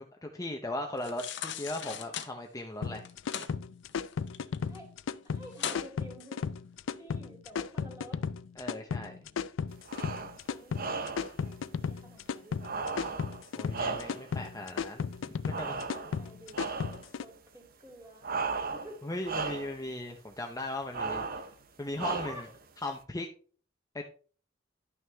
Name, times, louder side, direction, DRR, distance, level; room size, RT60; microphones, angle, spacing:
voice 1, 0.0-3.1 8.6-9.3 13.6-15.1 15.4-16.0 19.0-21.2 21.8-22.5 22.8-23.3 23.9-24.1, left 1 dB, 20° left, 3 dB, 0.7 m, -38 dB
sound 1, 1.0-2.3 3.0-3.5 3.9-4.8 5.1-5.2 5.5-5.8 6.3-6.4, left 9 dB, 65° left, 0.8 m, -38 dB
sound 2, 2.8-17.2, left 6 dB, 80° left, 0.4 m, -35 dB
voice 2, 4.6-4.9 5.2-6.5 7.0-8.2 10.5-13.3 15.9-16.7 17.2-19.0 21.1-21.3 22.1-22.5, equal, 15° right, 1 dB, 2.8 m, -50 dB
sound 3, 9.9-10.4 10.7-11.4 12.6-14.4 15.5-16.2 16.5-17.1 18.2-19.0 19.2-19.8 20.9-21.5 22.0-22.6, right 4 dB, 50° right, 0.8 m, -35 dB
11.0 x 6.2 x 3.4 m, 0.41 s
head